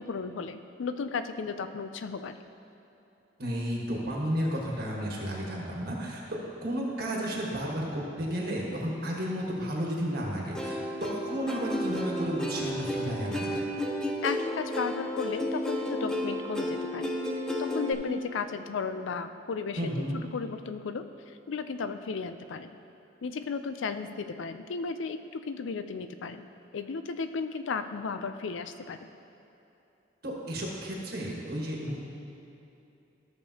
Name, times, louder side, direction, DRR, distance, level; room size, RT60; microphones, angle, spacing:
voice 1, 0.0-2.4 14.2-17.1 17.6-19.9 20.3-21.1 21.5-22.7 23.2-26.5 26.7-29.0, left 5 dB, 85° left, 9 dB, 0.4 m, -34 dB
voice 2, 3.4-13.6 19.8-20.2 30.2-32.0, equal, 55° right, -3 dB, 1.4 m, -32 dB
Plucked string instrument, 10.5-17.9, equal, 5° left, 0.7 m, -32 dB
13.5 x 6.7 x 2.8 m, 2.9 s
head